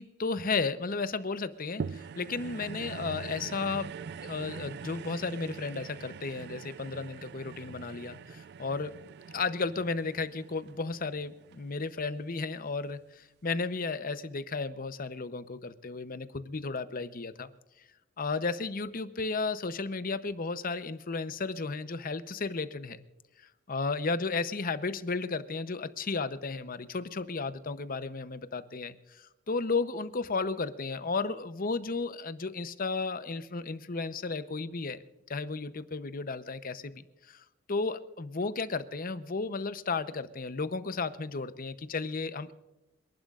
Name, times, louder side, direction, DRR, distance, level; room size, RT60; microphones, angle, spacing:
voice 1, 0.0-3.9 4.2-8.9 9.3-17.5 18.2-23.0 23.4-35.0 35.3-42.5, left 4 dB, 45° left, 12 dB, 0.8 m, -34 dB
sound 1, 1.8-12.3 12.9-13.0, right 6 dB, 55° right, 0.3 m, -43 dB
27.5 x 11.5 x 2.5 m, 1.0 s
head